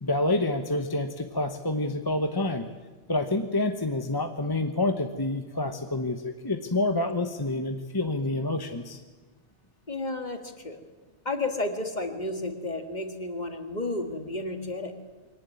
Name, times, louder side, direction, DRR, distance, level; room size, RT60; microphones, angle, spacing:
voice 1, 0.0-2.7 3.1-9.0, left 2 dB, 20° left, 7 dB, 1.1 m, -28 dB
voice 2, 9.9-10.8 11.2-14.9, left 2 dB, 35° left, 7 dB, 2.2 m, -32 dB
23.0 x 18.5 x 9.5 m, 1.3 s
omnidirectional pair, 1.3 m